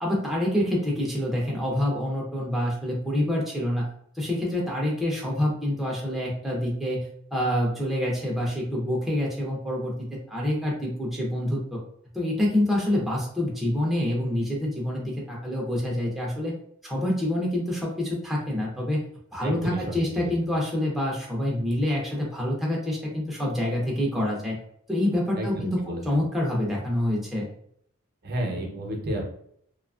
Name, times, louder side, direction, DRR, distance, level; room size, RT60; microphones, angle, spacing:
voice 1, 0.0-3.9 4.1-11.8 12.1-16.5 16.8-19.0 19.3-24.6 24.9-25.8 26.0-27.5, left 1 dB, ahead, -4 dB, 0.5 m, -27 dB
voice 2, 19.4-20.3 25.3-26.0 28.2-29.3, right 1 dB, 45° right, 0 dB, 0.7 m, -31 dB
2.8 x 2.3 x 2.3 m, 0.66 s
head